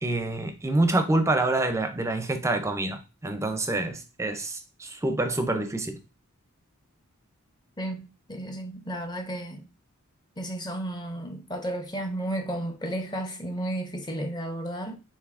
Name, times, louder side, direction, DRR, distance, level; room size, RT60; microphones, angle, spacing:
voice 1, 0.0-6.0, right 2 dB, 15° right, 0.6 m, -27 dB
voice 2, 7.8-9.6 10.4-15.0, right 1 dB, 20° left, 0.7 m, -33 dB
6.8 x 2.7 x 2.5 m
head